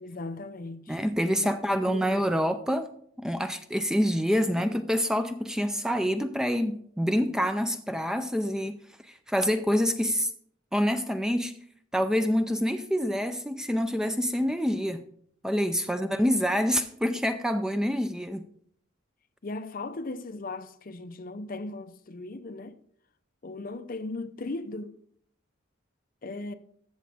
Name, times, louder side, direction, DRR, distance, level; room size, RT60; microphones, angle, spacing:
voice 1, 0.0-1.0 1.4-2.1 4.6-4.7 15.9-16.1 19.4-22.8 23.4-25.0 26.2-26.5, left 2 dB, 45° left, 0.6 m, -38 dB
voice 2, 0.9-2.9 3.2-8.8 9.0-10.3 10.7-11.5 11.9-15.0 15.4-18.5, equal, 5° right, 0.4 m, -26 dB
13.5 x 7.5 x 3.5 m
head